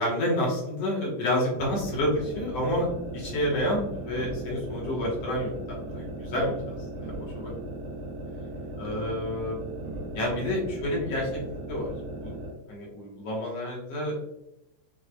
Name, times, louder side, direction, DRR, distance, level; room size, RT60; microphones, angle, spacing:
voice 1, 0.0-2.9 3.1-7.6 8.8-9.6 10.1-11.4 11.7-11.9 12.2-12.3 12.7-14.2, left 1 dB, 60° left, -3 dB, 1.9 m, -29 dB
sound 1, 1.5-12.6, right 1 dB, 80° right, 1.8 m, -37 dB
6.1 x 3.2 x 2.2 m, 0.87 s
omnidirectional pair, 3.9 m